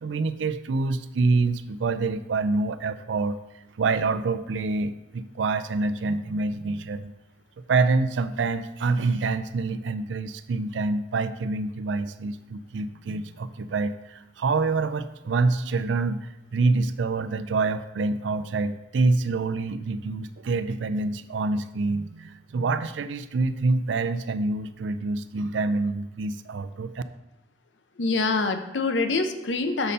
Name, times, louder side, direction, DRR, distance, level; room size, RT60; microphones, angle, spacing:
voice 1, 0.0-3.4 3.8-7.1 7.7-27.0, right 3 dB, 90° right, 12 dB, 0.4 m, -26 dB
voice 2, 28.0-29.9, left 3 dB, 90° left, 7 dB, 0.7 m, -25 dB
6.8 x 4.2 x 5.2 m, 0.97 s
head